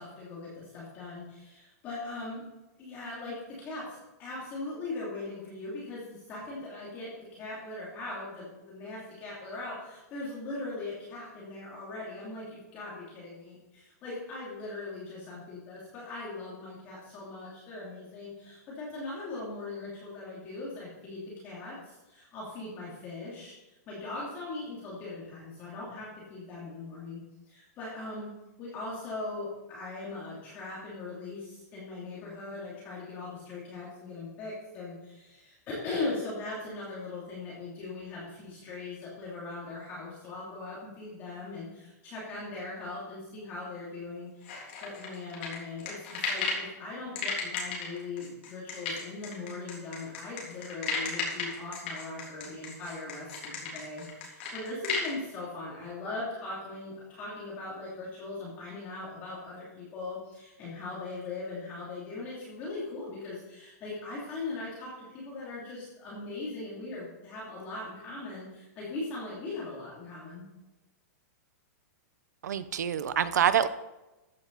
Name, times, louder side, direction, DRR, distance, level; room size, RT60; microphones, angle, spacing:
voice 1, 0.0-2.4 2.8-27.2 27.5-28.3 28.6-70.5, left 3 dB, 20° left, -6 dB, 2.9 m, -40 dB
sound 1, 44.4-46.7 47.1-55.1, left 5 dB, 40° left, 3.5 m, -34 dB
voice 2, 72.4-73.7, right 9 dB, 75° right, 13 dB, 0.9 m, -26 dB
14.0 x 9.5 x 4.1 m, 1.0 s
supercardioid pair, 180°, 9 cm